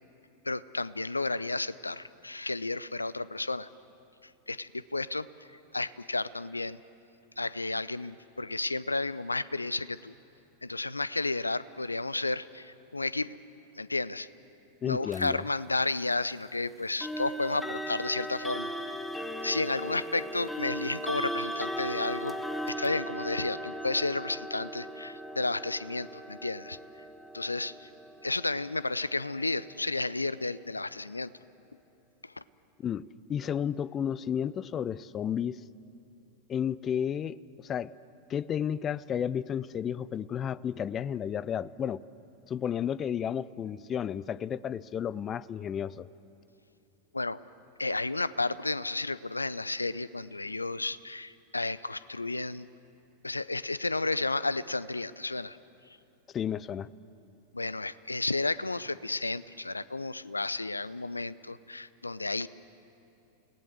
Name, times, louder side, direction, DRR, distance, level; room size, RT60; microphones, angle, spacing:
voice 1, 0.5-3.7 4.5-5.3 5.7-6.8 7.4-10.1 10.6-13.4 13.8-14.3 14.9-18.7 19.4-22.3 22.7-26.8 27.3-27.9 28.2-31.3 32.2-32.3 47.1-47.4 47.8-52.7 53.2-55.6 57.5-62.5, left 2 dB, 80° left, 18 dB, 0.5 m, -32 dB
voice 2, 14.8-15.4 32.8-33.0 33.3-35.6 36.5-37.9 38.3-42.0 42.5-46.1 56.3-56.9, left 8 dB, 25° left, 20 dB, 0.5 m, -32 dB
sound 1, 15.1-15.3 17.0-29.8, equal, 5° left, 1.1 m, -38 dB
29.5 x 18.0 x 7.8 m, 2.8 s
figure-of-eight pair, 90°, 0 cm